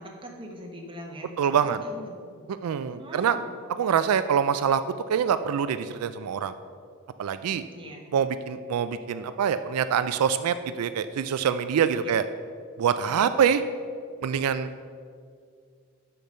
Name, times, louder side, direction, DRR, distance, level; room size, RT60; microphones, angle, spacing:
voice 1, 0.0-1.3 1.6-2.1 3.0-3.5 7.7-8.1 12.0-12.1 13.2-13.3, equal, 25° right, 1 dB, 1.1 m, -41 dB
voice 2, 1.4-1.8 2.6-3.4 3.8-4.8 5.1-6.5 7.2-7.6 8.1-12.3 12.8-13.6 14.2-14.7, right 7 dB, 85° right, 12 dB, 0.3 m, -25 dB
6.7 x 5.8 x 6.4 m, 2.2 s
head